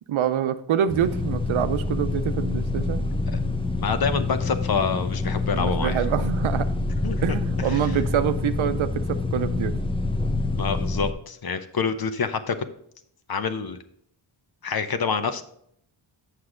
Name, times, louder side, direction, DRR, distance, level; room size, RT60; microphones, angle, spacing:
voice 1, 0.1-3.0 5.5-6.7 7.2-9.7, right 9 dB, 85° right, 11 dB, 0.7 m, -26 dB
sound 1, 0.9-11.1, left 3 dB, 10° left, 0.6 m, -26 dB
voice 2, 3.8-6.0 7.0-7.2 7.7-7.9 10.5-12.6 13.3-13.8 14.6-15.4, left 5 dB, 50° left, 10 dB, 0.8 m, -27 dB
7.9 x 6.5 x 3.7 m, 0.69 s
wide cardioid pair, 95°, 47 cm